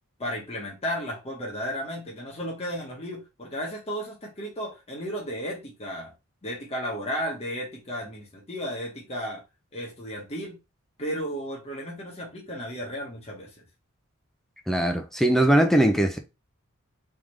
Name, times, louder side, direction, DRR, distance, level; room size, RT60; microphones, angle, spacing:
voice 1, 0.2-6.1 6.4-9.4 9.7-10.6 11.0-13.5, equal, 30° left, 1.3 m, -34 dB
voice 2, 14.7-16.2, right 1 dB, ahead, 0.5 m, -20 dB
3.6 x 3.6 x 3.2 m
head